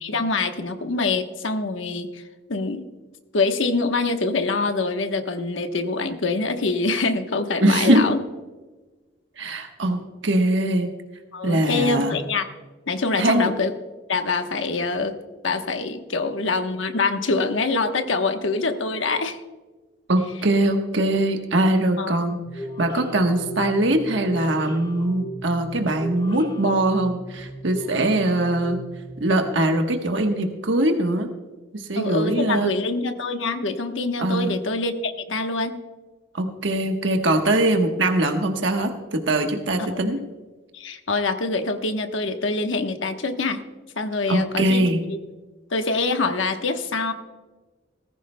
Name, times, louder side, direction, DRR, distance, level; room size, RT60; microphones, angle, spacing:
voice 1, 0.0-2.2 2.5-2.9 3.3-8.2 11.3-12.5 12.9-13.7 14.1-15.2 15.4-19.4 22.0-22.1 32.0-35.8 39.8-40.1 40.7-43.6 44.0-45.2 45.7-47.1, left 3 dB, 85° left, 6 dB, 1.1 m, -25 dB
voice 2, 7.6-8.0 9.4-10.9 11.4-12.1 13.2-13.5 20.1-28.8 29.2-31.3 31.7-32.7 34.2-34.6 36.3-40.2 44.3-45.0, right 1 dB, 75° right, 4 dB, 1.2 m, -22 dB
sound 1, 22.5-29.3, equal, 25° left, 1.7 m, -37 dB
18.5 x 15.0 x 2.2 m, 1.3 s
head